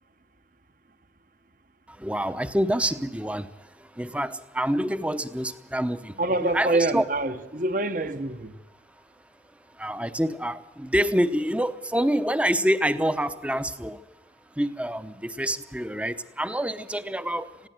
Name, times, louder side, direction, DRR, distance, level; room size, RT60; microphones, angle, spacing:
voice 1, 2.0-3.5 4.0-6.1 6.5-7.0 9.8-14.0 14.6-17.7, equal, 5° right, 0.8 m, -26 dB
voice 2, 6.2-8.5, right 2 dB, 45° right, 1.1 m, -26 dB
21.5 x 15.5 x 9.3 m
head